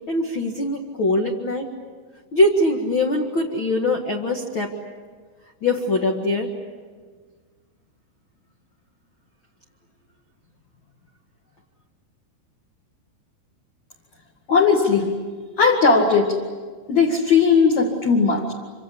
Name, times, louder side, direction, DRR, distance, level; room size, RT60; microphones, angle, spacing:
voice 1, 0.1-1.7 2.3-4.7 5.6-6.5, left 1 dB, 80° left, 1 dB, 1.1 m, -22 dB
voice 2, 14.5-15.1 15.6-16.3 16.9-18.5, left 5 dB, 45° left, -1 dB, 2.8 m, -17 dB
26.5 x 25.5 x 8.4 m, 1.5 s
omnidirectional pair, 5.3 m